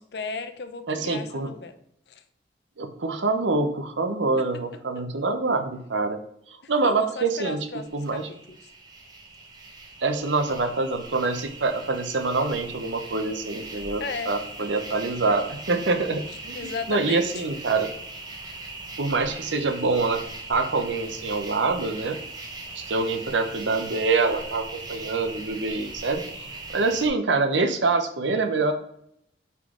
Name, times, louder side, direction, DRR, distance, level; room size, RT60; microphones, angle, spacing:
voice 1, 0.1-1.8 2.1-2.2 4.4-4.5 6.6-8.7 14.0-14.3 16.5-17.4, left 4 dB, 65° left, 9 dB, 0.6 m, -35 dB
voice 2, 0.9-1.5 2.8-6.2 6.5-7.7 7.9-8.3 10.0-16.6 16.9-17.9 19.0-20.2 20.5-22.2 22.7-26.2 26.7-28.7, right 3 dB, 80° right, 8 dB, 0.8 m, -25 dB
sound 1, 7.6-27.1, right 2 dB, 20° right, 0.8 m, -40 dB
8.2 x 3.8 x 3.8 m, 0.73 s
head